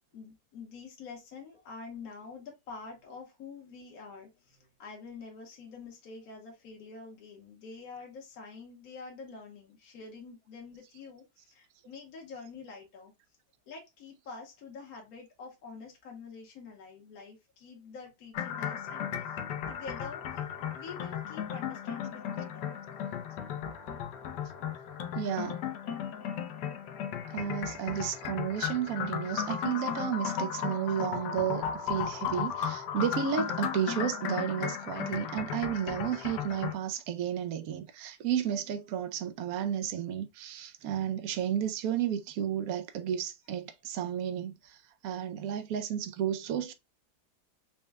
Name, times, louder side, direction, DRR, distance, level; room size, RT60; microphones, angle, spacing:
voice 1, 0.1-13.1 13.7-19.4 19.7-20.4 20.7-22.7, left 4 dB, 55° left, 1.4 m, -47 dB
sound 1, 18.3-36.7, left 8 dB, 75° left, 1.1 m, -35 dB
voice 2, 25.1-25.6 27.3-44.8 45.0-46.7, right 9 dB, 70° right, 0.8 m, -32 dB
4.2 x 2.2 x 3.3 m
omnidirectional pair, 2.0 m